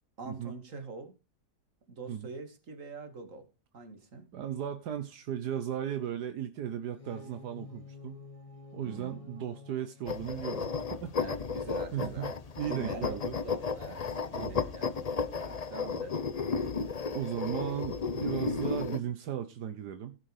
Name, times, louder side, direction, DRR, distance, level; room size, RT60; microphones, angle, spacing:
voice 1, 0.2-1.1 1.9-3.5 3.7-4.2 8.8-9.2 11.2-12.3 12.7-14.0 14.3-14.9 15.4-16.2, right 3 dB, 50° right, 2.4 m, -44 dB
voice 2, 4.3-8.2 8.7-11.2 11.9-13.4 14.4-14.6 17.1-20.2, right 10 dB, 80° right, 1.6 m, -36 dB
sound 1, 6.8-12.8, left 4 dB, 20° left, 1.5 m, -51 dB
Stone rolling on stone pestle & mortar, 10.1-19.0, left 5 dB, 40° left, 0.5 m, -34 dB
15.5 x 6.5 x 4.9 m
omnidirectional pair, 1.7 m